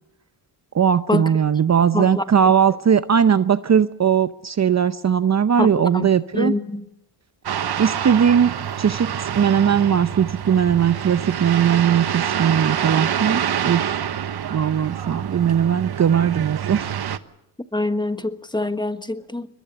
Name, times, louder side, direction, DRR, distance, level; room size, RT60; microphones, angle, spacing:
voice 1, 0.7-6.5 7.8-8.5 8.8-13.8 14.5-16.9, right 8 dB, 40° right, 0.7 m, -19 dB
voice 2, 1.9-2.2 5.6-6.1 6.3-6.8 17.7-19.5, left 2 dB, 10° left, 1.4 m, -24 dB
sound 1, 7.5-17.2, right 9 dB, 60° right, 1.2 m, -26 dB
22.5 x 20.5 x 6.9 m
cardioid pair, 70°, 43 cm